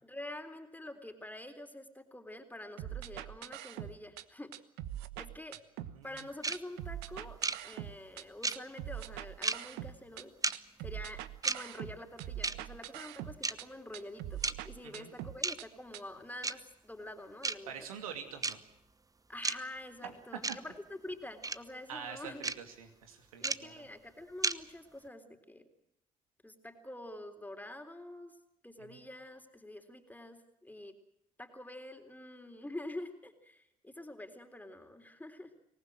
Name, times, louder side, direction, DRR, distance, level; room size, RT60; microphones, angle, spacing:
voice 1, 0.0-4.5 5.2-5.6 6.0-17.7 19.3-22.5 23.4-25.7 26.4-28.4 28.6-31.0 31.4-35.5, left 1 dB, 10° left, 6 dB, 3.7 m, -47 dB
sound 1, 2.8-4.2 4.5-6.2 6.5-8.2 8.5-10.2 10.5-13.7 13.9-15.7 15.9-16.0, right 13 dB, 70° right, 1.1 m, -43 dB
voice 2, 5.9-6.3 14.8-15.1 17.7-18.6 20.0-20.1 20.5-20.6 21.9-23.8 28.8-29.0, right 7 dB, 85° right, 6 dB, 2.6 m, -45 dB
sound 2, 6.4-6.6 7.4-7.6 8.4-8.6 9.4-9.6 10.4-10.5 11.4-11.6 12.4-12.6 13.4-13.5 14.4-14.5 15.4-15.6 16.4-16.5 17.4-17.5 18.4-18.5 19.4-19.6 20.4-20.6 21.4-21.6 22.4-22.6 23.4-23.6 24.4-24.5, right 3 dB, 20° right, 1.1 m, -31 dB
25.0 x 19.0 x 7.7 m, 0.79 s
hypercardioid pair, 50°, 18 cm